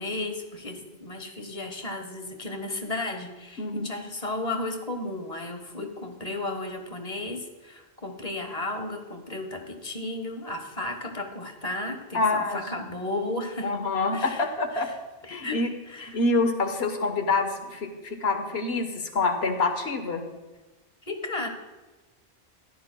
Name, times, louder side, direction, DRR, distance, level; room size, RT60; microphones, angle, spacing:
voice 1, 0.0-13.7 14.1-15.0 15.4-16.2 21.1-21.5, left 2 dB, 40° left, 5 dB, 1.2 m, -34 dB
voice 2, 3.6-3.9 12.1-12.6 13.6-14.9 15.3-15.7 16.0-20.2, left 3 dB, 75° left, 5 dB, 1.4 m, -26 dB
15.5 x 11.5 x 2.2 m, 1.1 s
omnidirectional pair, 1.1 m